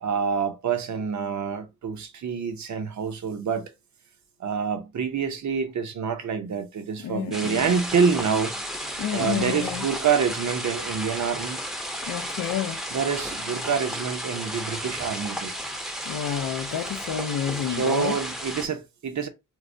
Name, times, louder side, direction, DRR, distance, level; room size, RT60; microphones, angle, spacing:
voice 1, 0.0-3.7 4.4-8.6 9.1-11.6 12.9-15.5 17.7-19.3, right 6 dB, 60° right, 0.7 m, -27 dB
voice 2, 7.0-7.7 9.0-9.9 12.0-12.8 16.1-18.2, left 9 dB, 85° left, 0.5 m, -30 dB
sound 1, 7.3-18.7, equal, ahead, 0.6 m, -33 dB
4.6 x 2.1 x 2.5 m
wide cardioid pair, 125°, 33 cm